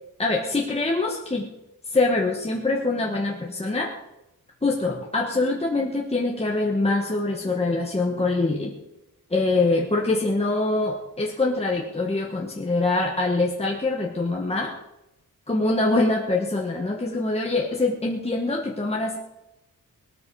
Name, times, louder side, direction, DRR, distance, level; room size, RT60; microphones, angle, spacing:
voice 1, 0.2-1.5 1.8-3.9 4.6-8.7 9.3-14.7 15.5-19.2, left 2 dB, 20° left, -1 dB, 1.5 m, -24 dB
20.0 x 13.0 x 4.8 m, 0.93 s
wide cardioid pair, 140°, 33 cm